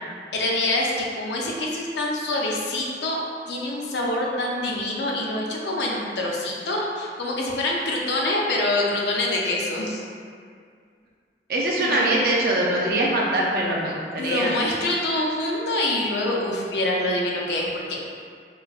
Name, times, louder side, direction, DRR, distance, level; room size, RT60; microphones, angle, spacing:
voice 1, 0.3-3.2 3.5-10.0 11.8-12.3 14.2-18.0, left 1 dB, 80° left, -2 dB, 0.5 m, -25 dB
voice 2, 11.5-14.5, right 1 dB, 55° right, -3 dB, 0.4 m, -23 dB
4.3 x 2.1 x 2.4 m, 2.1 s
head